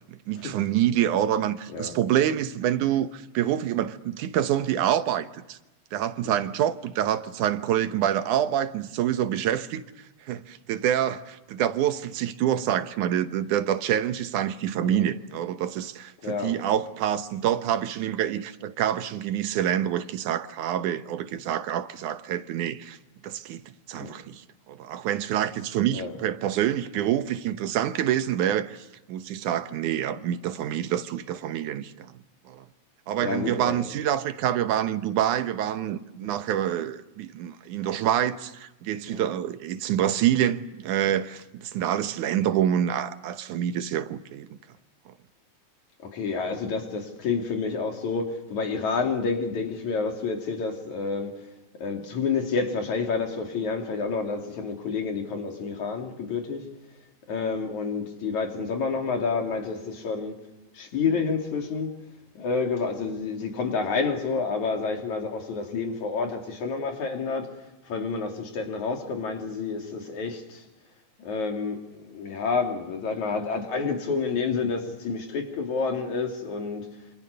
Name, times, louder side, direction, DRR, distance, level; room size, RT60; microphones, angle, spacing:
voice 1, 0.1-5.6 5.9-9.8 10.3-23.0 23.2-23.6 23.9-24.4 24.7-28.8 29.1-32.1 32.5-32.7 33.1-44.5, right 10 dB, 85° right, 2.5 m, -26 dB
voice 2, 16.2-16.7 24.0-24.1 25.9-26.1 33.2-33.8 36.2-36.3 39.1-39.2 46.0-51.3 51.8-56.7 57.3-60.4 60.7-61.9 62.4-67.6 67.9-70.6 71.2-76.9, left 4 dB, 70° left, 4.2 m, -29 dB
27.5 x 26.5 x 6.7 m
omnidirectional pair, 3.4 m